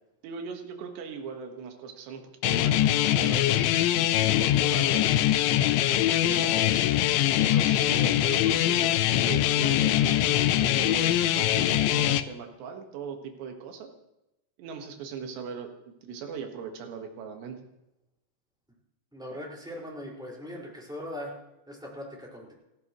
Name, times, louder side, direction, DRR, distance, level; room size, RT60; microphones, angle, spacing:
voice 1, 0.2-3.7 4.2-5.2 6.2-6.9 7.5-13.9 14.6-17.6, right 6 dB, 70° right, 4 dB, 3.7 m, -39 dB
sound 1, 2.4-12.2, left 12 dB, 85° left, 3.1 m, -23 dB
voice 2, 19.1-21.3 21.7-22.5, left 1 dB, ahead, -3 dB, 4.5 m, -40 dB
29.0 x 13.0 x 3.2 m, 0.92 s
omnidirectional pair, 5.2 m